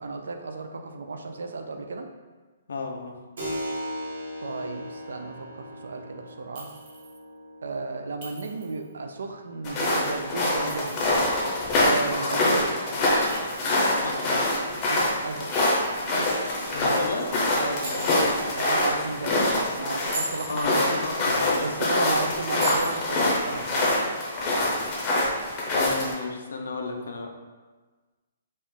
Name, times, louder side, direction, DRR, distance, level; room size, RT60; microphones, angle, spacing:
voice 1, 0.0-2.1 4.4-6.7 7.6-11.1 11.9-12.7 14.9-15.5 16.1-16.3 17.6-18.0 18.6-20.9 21.6-23.9, right 3 dB, 90° right, 5 dB, 0.5 m, -34 dB
voice 2, 2.7-3.2 12.3-12.4 14.0-14.4 16.7-17.4 19.2-19.4 20.5-21.7 25.7-27.3, left 3 dB, 90° left, 2 dB, 0.6 m, -32 dB
Keyboard (musical), 3.4-11.6, equal, 60° right, 1.3 m, -39 dB
Chink clink, 6.6-7.2 8.2-8.9 10.5-11.4 13.3-14.2 15.5-16.3 17.8-18.5 20.0-20.7 22.6-23.3, right 2 dB, 30° right, 0.8 m, -39 dB
sound 1, 9.6-26.1, left 1 dB, 20° left, 0.6 m, -25 dB
4.3 x 2.4 x 3.6 m, 1.3 s
hypercardioid pair, 175°, 0 cm